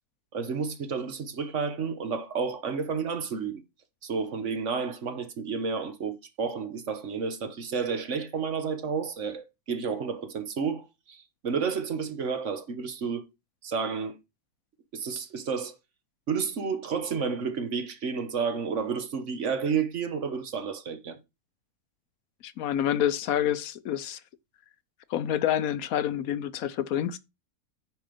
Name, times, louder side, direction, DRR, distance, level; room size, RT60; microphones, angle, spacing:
voice 1, 0.3-3.6 4.0-13.2 13.6-14.2 14.9-15.7 16.3-21.2, right 5 dB, 55° right, 1.3 m, -31 dB
voice 2, 22.4-24.2 25.1-27.2, left 10 dB, 70° left, 1.0 m, -28 dB
9.1 x 5.2 x 5.1 m
omnidirectional pair, 1.6 m